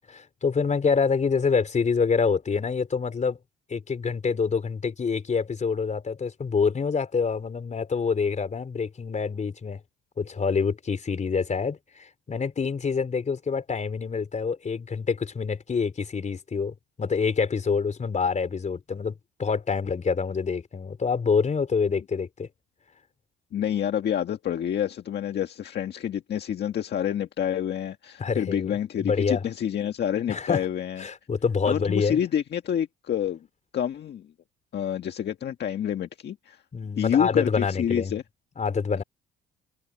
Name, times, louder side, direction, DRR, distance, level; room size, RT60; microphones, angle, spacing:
voice 1, 0.1-3.4 3.7-9.8 10.2-19.1 19.4-22.5 28.2-28.7 29.0-29.4 30.3-30.6 31.0-32.2 36.7-38.2 38.6-39.0, left 5 dB, 35° left, 4.0 m, -26 dB
voice 2, 23.5-31.0 31.6-33.5 33.7-34.3 34.7-36.6 37.0-38.2, left 9 dB, 55° left, 1.7 m, -28 dB
supercardioid pair, 85°, 21 cm